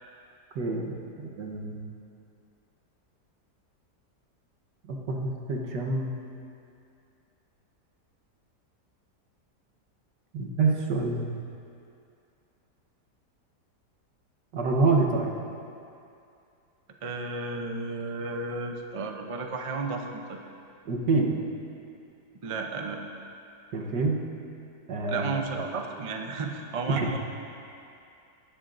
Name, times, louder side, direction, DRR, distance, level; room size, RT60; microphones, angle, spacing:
voice 1, 0.6-1.8 4.9-6.1 10.3-11.3 14.5-15.3 20.9-21.4 23.7-24.2 24.9-25.3 26.9-27.1, right 3 dB, 85° right, 0 dB, 1.7 m, -27 dB
voice 2, 17.0-20.4 22.4-23.0 25.1-27.2, right 3 dB, 50° right, 3 dB, 0.4 m, -33 dB
19.0 x 10.5 x 2.6 m, 2.6 s
omnidirectional pair, 1.8 m